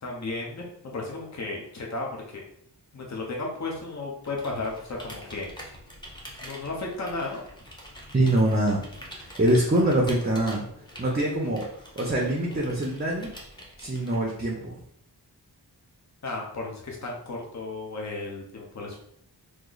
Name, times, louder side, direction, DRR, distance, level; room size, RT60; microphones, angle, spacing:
voice 1, 0.0-2.4 2.9-5.6 6.4-7.5 16.2-19.0, left 3 dB, 40° left, -2 dB, 0.8 m, -34 dB
Computer keyboard, 4.2-14.5, equal, 10° left, 0.9 m, -45 dB
voice 2, 8.1-8.8 9.1-10.6 11.0-11.6 12.0-13.3 13.8-14.8, right 1 dB, 25° right, -1 dB, 0.6 m, -24 dB
3.0 x 2.0 x 3.8 m, 0.69 s
wide cardioid pair, 55°, 42 cm